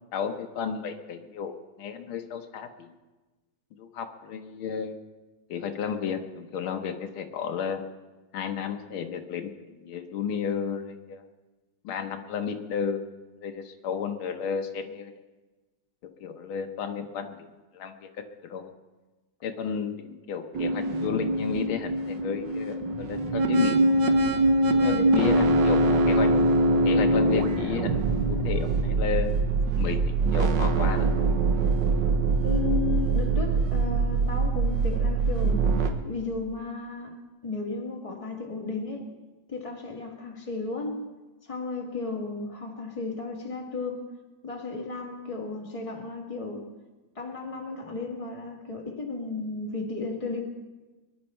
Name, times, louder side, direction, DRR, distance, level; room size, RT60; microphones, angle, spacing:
voice 1, 0.1-1.5 1.8-2.9 3.8-5.0 5.5-7.8 8.3-10.8 11.1-11.2 11.8-13.0 13.4-15.1 16.2-17.5 17.7-17.9 18.4-18.7 19.4-23.8 24.8-26.3 26.8-28.0 28.3-29.3 29.8-30.0 30.3-31.2, left 7 dB, 80° left, 6 dB, 1.8 m, -32 dB
sound 1, 20.5-35.9, right 2 dB, 65° right, 1.6 m, -23 dB
voice 2, 24.7-25.1 32.4-35.6 36.0-37.1 37.4-39.1 39.5-41.1 41.4-44.1 44.4-46.6 47.2-50.4, left 4 dB, 15° left, 0 dB, 1.9 m, -34 dB
23.0 x 11.0 x 4.4 m, 1.2 s
omnidirectional pair, 2.2 m